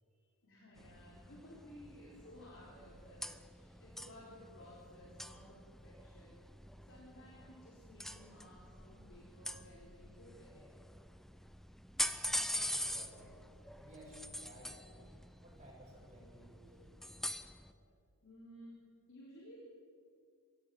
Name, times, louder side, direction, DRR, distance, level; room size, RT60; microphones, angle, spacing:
voice 1, 0.4-6.4 6.8-10.6 17.6-17.9 18.2-18.7 19.1-19.6, equal, 60° left, -5 dB, 4.3 m, -57 dB
sound 1, 0.8-17.7, left 1 dB, ahead, 0.7 m, -45 dB
voice 2, 12.2-13.4 13.8-17.2, right 1 dB, 30° right, -3 dB, 7.9 m, -58 dB
24.5 x 16.0 x 7.8 m, 2.1 s
head